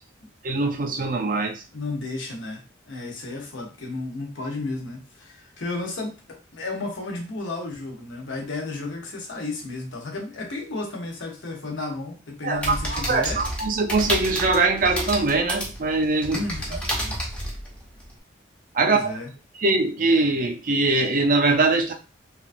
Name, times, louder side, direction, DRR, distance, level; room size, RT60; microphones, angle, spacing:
voice 1, 0.4-1.6 12.4-16.4 18.7-19.1 19.6-21.9, right 3 dB, 45° right, 4 dB, 0.4 m, -22 dB
voice 2, 1.7-13.4 16.3-16.8 18.8-19.3, left 2 dB, 75° left, 0 dB, 0.8 m, -33 dB
sound 1, 12.5-18.1, equal, 5° left, 0.6 m, -30 dB
3.0 x 2.3 x 2.5 m, 0.33 s
head